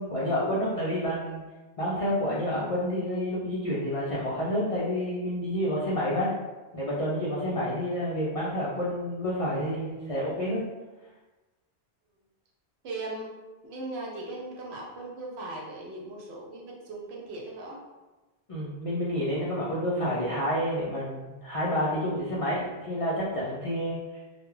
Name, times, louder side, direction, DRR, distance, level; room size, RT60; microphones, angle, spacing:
voice 1, 0.0-1.4 1.8-6.3 6.7-10.6 18.5-24.0, equal, 60° left, -7 dB, 0.3 m, -29 dB
voice 2, 12.8-13.3 13.6-17.8, right 2 dB, 75° right, -2 dB, 0.9 m, -38 dB
2.3 x 2.1 x 3.1 m, 1.2 s
omnidirectional pair, 1.1 m